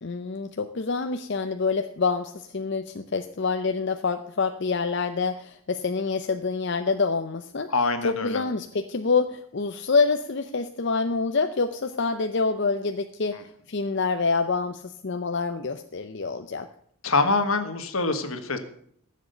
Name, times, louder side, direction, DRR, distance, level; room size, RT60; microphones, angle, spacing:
voice 1, 0.0-7.7 8.0-16.7, left 4 dB, 50° left, 8 dB, 0.6 m, -26 dB
voice 2, 7.7-8.4 13.3-13.4 17.0-18.6, left 3 dB, 70° left, 9 dB, 1.4 m, -25 dB
14.5 x 7.4 x 6.7 m, 0.64 s
head